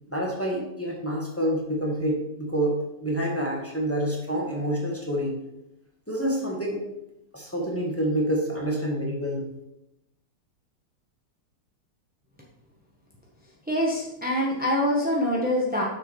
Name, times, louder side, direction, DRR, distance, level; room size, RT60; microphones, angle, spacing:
voice 1, 0.1-5.3 6.1-6.8 7.3-9.5, right 1 dB, 10° left, -3 dB, 1.1 m, -27 dB
voice 2, 13.7-15.8, left 1 dB, 10° right, -3 dB, 0.6 m, -24 dB
6.7 x 5.9 x 4.7 m, 0.88 s
omnidirectional pair, 2.4 m